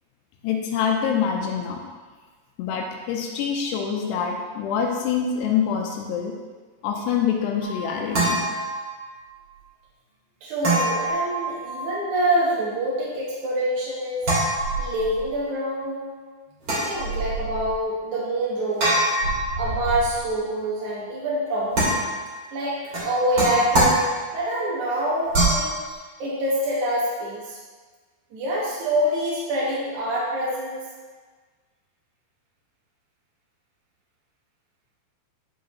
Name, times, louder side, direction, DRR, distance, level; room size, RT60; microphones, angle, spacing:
voice 1, 0.4-1.8 2.6-6.4 6.8-8.4, left 7 dB, 85° left, 1 dB, 2.8 m, -25 dB
sound 1, 7.6-9.2 10.6-12.0 14.2-15.3 16.6-17.7 18.8-20.2 21.7-22.4 22.9-24.5 25.3-25.8, right 1 dB, 35° right, 2.3 m, -25 dB
voice 2, 10.4-14.2 14.8-16.1 16.8-19.1 19.6-22.0 22.5-24.1 24.3-27.6 28.3-30.8, right 1 dB, 65° right, -6 dB, 2.0 m, -26 dB
11.0 x 5.0 x 3.0 m, 1.4 s
omnidirectional pair, 5.0 m